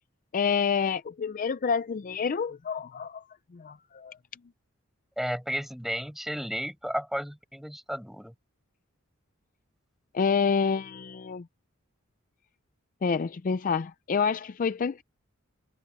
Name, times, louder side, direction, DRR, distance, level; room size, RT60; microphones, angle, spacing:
voice 1, 0.3-3.2 3.5-4.2 10.1-11.5 13.0-15.0, left 5 dB, 40° left, 0.4 m, -28 dB
voice 2, 5.2-8.3, equal, ahead, 5.6 m, -33 dB
head